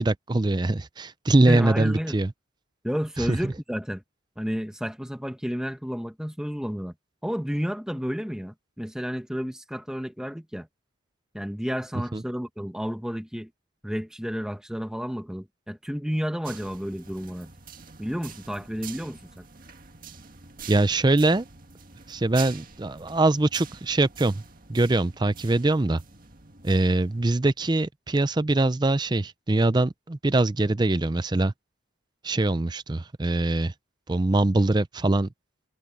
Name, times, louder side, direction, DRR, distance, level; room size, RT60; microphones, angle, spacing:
voice 1, 0.0-2.3 3.2-3.3 12.1-12.2 20.7-21.5 22.1-24.4 24.7-26.0 26.6-31.5 32.2-33.7 34.1-35.3, right 2 dB, 20° right, 0.5 m, -23 dB
voice 2, 1.5-2.2 2.8-4.0 4.4-6.9 7.2-10.7 11.3-13.5 13.8-17.5 18.0-19.4, equal, 5° right, 1.3 m, -31 dB
sound 1, 16.4-27.3, right 6 dB, 45° right, 2.0 m, -45 dB
head